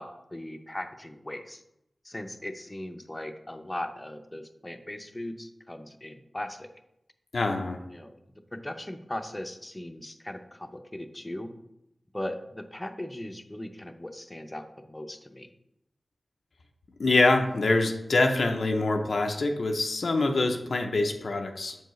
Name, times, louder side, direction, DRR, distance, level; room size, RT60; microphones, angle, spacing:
voice 1, 0.0-1.6 2.0-6.7 7.9-8.1 8.5-11.5 12.1-15.5, left 1 dB, 20° left, 7 dB, 0.6 m, -38 dB
voice 2, 7.3-7.8 17.0-21.8, left 2 dB, 80° left, 3 dB, 0.6 m, -25 dB
7.2 x 4.6 x 3.1 m, 0.84 s
cardioid pair, 45°, 0 cm